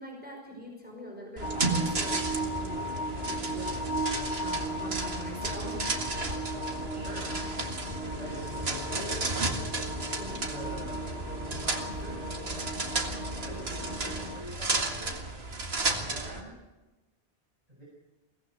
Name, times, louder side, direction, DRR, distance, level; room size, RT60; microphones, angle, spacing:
voice 1, 0.0-3.8 4.4-6.0 10.2-10.4, left 1 dB, 10° right, 0 dB, 5.2 m, -43 dB
sound 1, 1.4-14.4, equal, 80° left, 2.5 m, -36 dB
sound 2, 1.4-16.4, right 3 dB, 80° right, 2.1 m, -34 dB
voice 2, 6.9-7.7 8.2-9.2 10.4-11.1 11.3-12.2 13.4-15.1 16.0-16.5 17.8-17.9, right 1 dB, 40° right, -6 dB, 6.8 m, -44 dB
23.0 x 18.0 x 6.6 m, 1.1 s
omnidirectional pair, 1.0 m